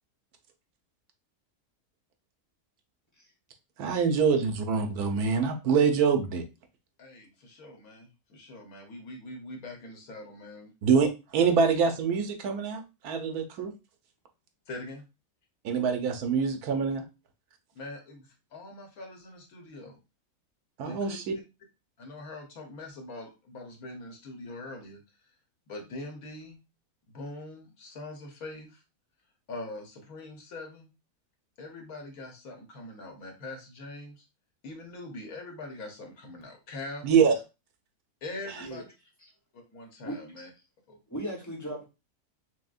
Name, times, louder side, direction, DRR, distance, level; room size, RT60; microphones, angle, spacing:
voice 1, 3.8-6.4 10.8-13.7 15.6-17.0 20.8-21.3 37.0-37.3, right 6 dB, 80° right, 1.2 m, -25 dB
voice 2, 7.0-10.7 14.7-15.0 17.7-20.0 20.8-21.2 22.0-25.0 25.7-26.6 27.1-28.8 29.5-30.9 31.6-34.2 34.6-37.1 38.2-38.8 39.5-40.5 40.9-41.0, left 2 dB, 70° left, 1.4 m, -43 dB
voice 3, 40.0-40.4 41.1-41.8, right 1 dB, 15° left, 0.8 m, -37 dB
6.2 x 2.1 x 2.4 m
omnidirectional pair, 1.6 m